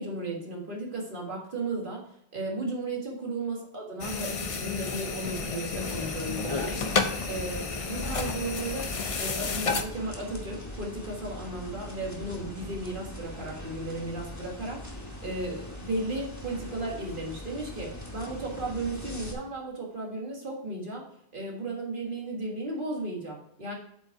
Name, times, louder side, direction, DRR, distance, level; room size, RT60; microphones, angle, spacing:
voice 1, 0.0-2.0 2.3-6.8 7.3-14.8 15.2-21.0 21.3-23.7, right 2 dB, 50° right, -2 dB, 1.8 m, -35 dB
sound 1, 4.0-9.8, left 4 dB, 40° left, 0.6 m, -31 dB
sound 2, 5.7-19.3, left 1 dB, 15° left, 1.2 m, -41 dB
7.6 x 5.5 x 4.5 m, 0.73 s
omnidirectional pair, 1.1 m